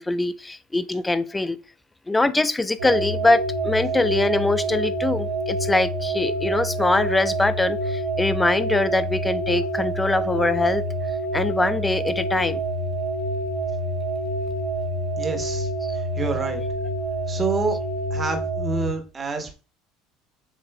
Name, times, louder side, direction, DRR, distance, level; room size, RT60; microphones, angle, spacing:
voice 1, 0.0-1.6 2.1-10.8 11.3-12.6 15.8-16.0, left 2 dB, 15° left, 0.4 m, -23 dB
sound 1, 2.8-18.9, right 1 dB, 85° right, 1.1 m, -27 dB
voice 2, 15.2-15.7 15.9-16.6 17.3-17.8 18.1-19.5, right 4 dB, 25° right, 1.3 m, -27 dB
7.6 x 3.0 x 2.3 m
hypercardioid pair, 70°, 0 cm